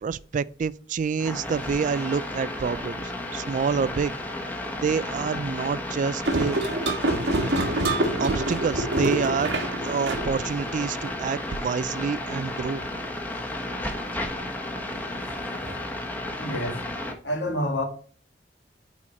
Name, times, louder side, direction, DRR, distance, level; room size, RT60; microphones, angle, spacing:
voice 1, 0.0-4.1 4.8-6.6 8.2-9.5 9.8-13.0, right 5 dB, 45° right, 0.3 m, -27 dB
sound 1, 1.2-17.1, left 1 dB, 10° left, 1.2 m, -33 dB
sound 2, 6.2-11.1, right 1 dB, 75° right, 1.5 m, -26 dB
voice 2, 16.4-16.8 17.2-17.8, left 1 dB, 75° left, 2.1 m, -28 dB
9.4 x 4.3 x 4.3 m
head